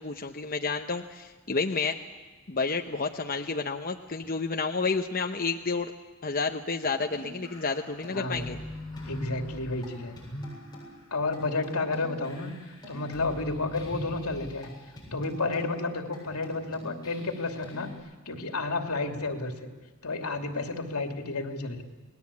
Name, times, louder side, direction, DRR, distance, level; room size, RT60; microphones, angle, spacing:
voice 1, 0.0-2.0 2.5-5.9 6.2-8.6, left 4 dB, 40° left, 4 dB, 0.9 m, -30 dB
sound 1, 6.8-10.9 11.3-11.4 11.6-14.7 15.0-15.7 16.1-16.2 16.4-17.9, left 1 dB, 20° left, 7.6 m, -41 dB
voice 2, 8.1-8.5 9.0-10.2 11.1-12.5 12.9-14.7 15.1-17.9 18.3-19.7 20.0-21.8, left 3 dB, 80° left, 4 dB, 2.8 m, -31 dB
29.0 x 19.5 x 8.5 m, 1.3 s
head